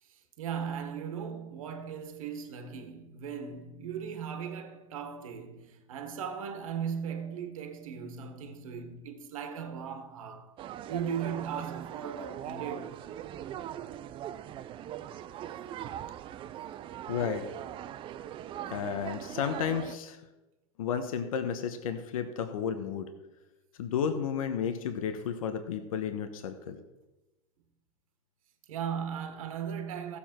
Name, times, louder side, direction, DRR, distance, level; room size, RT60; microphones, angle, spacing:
voice 1, 0.0-10.5 10.9-13.0 28.7-30.2, right 7 dB, 70° right, 1.5 m, -37 dB
sound 1, 10.6-20.0, right 11 dB, 30° right, 0.5 m, -41 dB
voice 2, 17.1-17.4 18.7-20.2 20.8-23.1 23.8-26.8, left 7 dB, 75° left, 1.2 m, -32 dB
15.0 x 7.2 x 4.5 m
hypercardioid pair, 115°, 18 cm